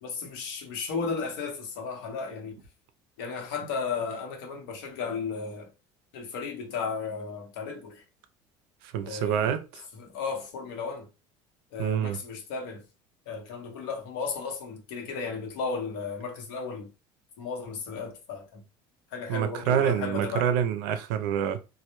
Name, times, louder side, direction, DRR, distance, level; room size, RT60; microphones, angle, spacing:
voice 1, 0.0-2.6 3.2-5.7 6.1-8.0 9.0-9.6 9.9-11.1 11.7-12.8 13.3-16.9 17.4-18.6 19.1-20.5, left 5 dB, 85° left, 0.8 m, -34 dB
voice 2, 8.8-9.6 11.8-12.2 19.3-21.6, right 9 dB, 85° right, 0.4 m, -26 dB
2.1 x 2.1 x 2.9 m
cardioid pair, 140°, 11 cm